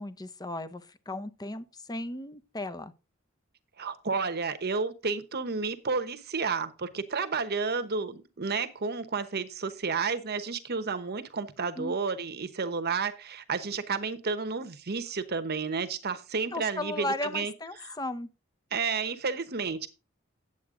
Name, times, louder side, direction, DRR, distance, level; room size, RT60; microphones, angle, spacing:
voice 1, 0.0-2.9 11.8-12.0 16.5-18.3, left 1 dB, 20° left, 0.7 m, -36 dB
voice 2, 3.8-17.5 17.8-18.0 18.7-19.9, right 5 dB, 50° right, 1.0 m, -31 dB
9.8 x 8.0 x 3.7 m
head